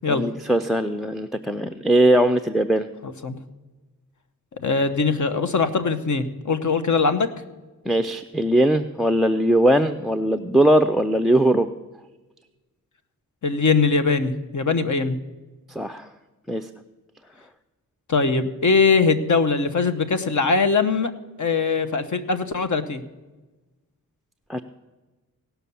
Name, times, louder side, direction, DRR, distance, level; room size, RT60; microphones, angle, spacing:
voice 1, 0.1-2.9 7.9-11.7 15.7-16.1 16.5-16.7 24.5-24.6, right 1 dB, ahead, 8 dB, 0.4 m, -20 dB
voice 2, 4.6-7.3 13.4-15.2 18.1-21.1 21.4-23.0, left 4 dB, 55° left, 10 dB, 1.0 m, -21 dB
17.5 x 5.8 x 6.9 m, 1.2 s
wide cardioid pair, 85°, 35 cm